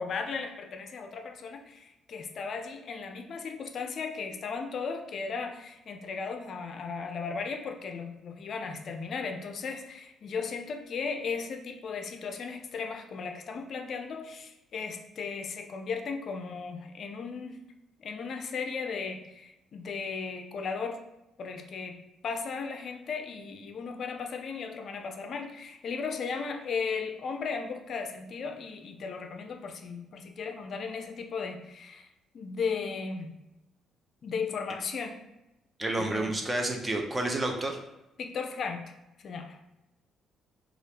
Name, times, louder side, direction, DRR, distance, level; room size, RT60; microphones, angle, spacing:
voice 1, 0.0-17.6 18.0-21.0 21.4-22.0 22.2-32.1 32.3-33.4 34.2-35.2 36.0-36.3 38.2-38.9 39.2-39.6, left 5 dB, 55° left, 5 dB, 0.4 m, -36 dB
voice 2, 35.8-37.8, right 2 dB, 20° right, 2 dB, 0.5 m, -30 dB
2.7 x 2.3 x 3.3 m, 0.93 s
supercardioid pair, 75°, 0 cm